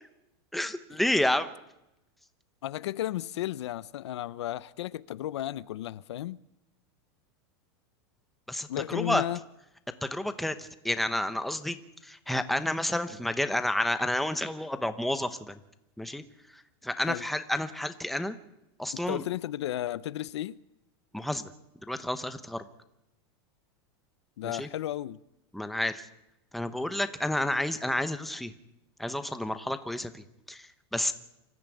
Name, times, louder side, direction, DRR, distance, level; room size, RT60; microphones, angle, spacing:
voice 1, 0.5-1.5 8.5-9.2 10.0-11.8 12.0-15.6 16.0-16.2 16.5-18.4 18.8-19.2 21.1-21.5 21.9-22.6 24.4-24.7 25.5-26.1 26.5-28.5 29.0-31.1, left 1 dB, ahead, 0.9 m, -30 dB
voice 2, 2.6-6.4 8.7-9.4 17.1-17.3 18.9-20.6 24.4-25.2, left 13 dB, 90° left, 0.8 m, -34 dB
25.5 x 14.5 x 9.2 m
supercardioid pair, 165°, 14 cm